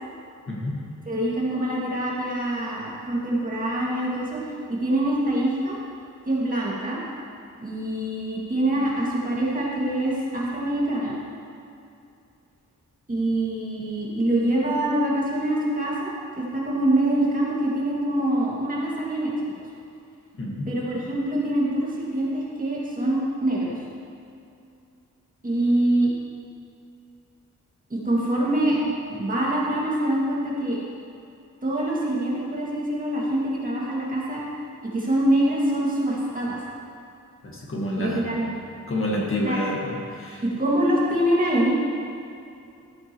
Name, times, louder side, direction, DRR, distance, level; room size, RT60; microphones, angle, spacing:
voice 1, 0.5-0.8 20.4-20.7 37.4-38.3 38.9-40.4, left 1 dB, 40° left, -3 dB, 1.6 m, -28 dB
voice 2, 1.1-4.4 4.7-5.8 6.3-7.0 7.6-11.2 13.1-19.3 20.7-23.8 25.4-26.1 27.9-30.8 31.6-34.4 34.8-36.6 38.0-38.6 39.4-39.6 40.4-41.9, right 1 dB, 25° right, -6 dB, 2.2 m, -24 dB
13.5 x 8.6 x 3.1 m, 2.6 s
wide cardioid pair, 130°, 31 cm